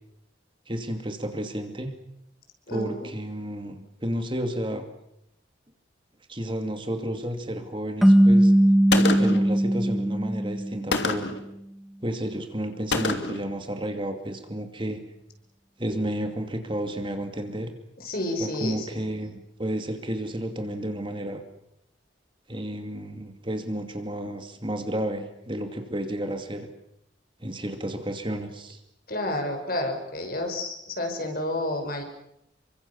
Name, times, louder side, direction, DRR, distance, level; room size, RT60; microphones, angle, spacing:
voice 1, 0.7-1.9 2.7-4.9 6.3-8.5 9.2-11.3 12.0-15.0 15.8-17.7 18.4-21.4 22.5-26.7 27.4-28.8, right 1 dB, 25° right, 6 dB, 2.6 m, -31 dB
voice 2, 2.7-3.1 18.0-18.9 29.1-32.0, left 1 dB, 50° left, 5 dB, 5.7 m, -30 dB
sound 1, 8.0-11.2, right 1 dB, ahead, 1.6 m, -19 dB
Gunshot gunfire, 8.9-9.5 10.9-11.4 12.9-13.5, left 3 dB, 65° left, 2.9 m, -26 dB
29.0 x 24.5 x 7.2 m, 0.79 s
head